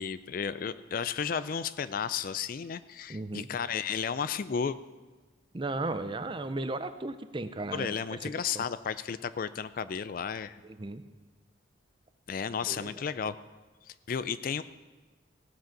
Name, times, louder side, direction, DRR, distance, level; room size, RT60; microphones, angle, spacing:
voice 1, 0.0-4.8 7.7-10.6 12.3-13.4 13.9-14.6, left 7 dB, 45° left, 15 dB, 0.3 m, -33 dB
voice 2, 3.1-3.5 5.5-8.3 8.5-8.6 10.6-11.0 12.6-12.9, right 2 dB, 25° right, 11 dB, 0.5 m, -35 dB
16.5 x 7.6 x 5.9 m, 1.3 s
head